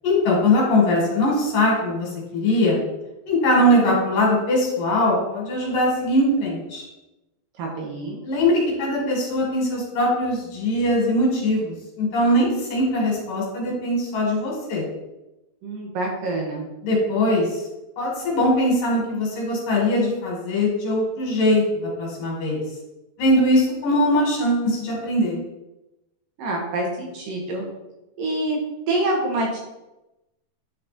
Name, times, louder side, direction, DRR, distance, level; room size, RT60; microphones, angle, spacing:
voice 1, 0.0-2.8 3.3-6.8 8.2-14.9 16.8-17.6 18.0-21.6 22.0-22.6 23.2-25.4, left 1 dB, 60° left, -2 dB, 3.4 m, -21 dB
voice 2, 7.6-8.2 15.6-16.7 26.4-27.6 28.2-28.6 28.9-29.6, right 2 dB, 65° right, -1 dB, 2.7 m, -26 dB
10.0 x 4.2 x 4.3 m, 0.97 s
omnidirectional pair, 4.6 m